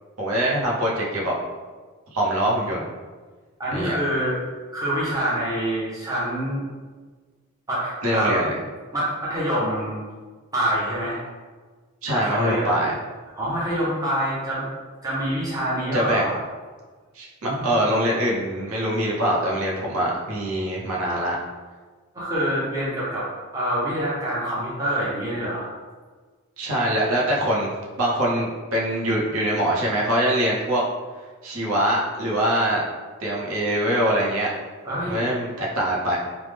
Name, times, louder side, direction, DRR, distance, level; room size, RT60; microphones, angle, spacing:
voice 1, 0.2-1.3 2.1-2.9 3.7-3.9 8.0-8.5 12.0-12.9 15.9-16.3 17.1-21.4 26.6-30.8 31.4-32.8 33.2-34.5 35.1-36.2, right 1 dB, 85° right, -4 dB, 0.7 m, -23 dB
voice 2, 3.6-4.4 4.7-6.6 7.7-8.4 8.9-10.0 10.5-11.2 12.1-12.7 13.3-14.6 15.0-16.3 17.4-17.8 22.1-23.2 23.5-25.7 34.8-35.2, right 1 dB, 15° right, -8 dB, 0.6 m, -26 dB
3.2 x 2.0 x 3.3 m, 1.4 s
head